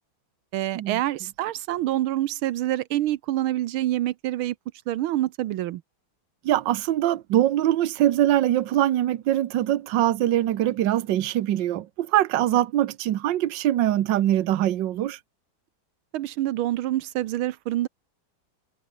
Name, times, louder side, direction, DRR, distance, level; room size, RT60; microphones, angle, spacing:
voice 1, 0.5-4.5 4.9-5.8 16.1-17.9, right 14 dB, 85° right, 1.6 m, -26 dB
voice 2, 6.4-15.2, right 13 dB, 65° right, 1.6 m, -23 dB
omnidirectional pair, 2.2 m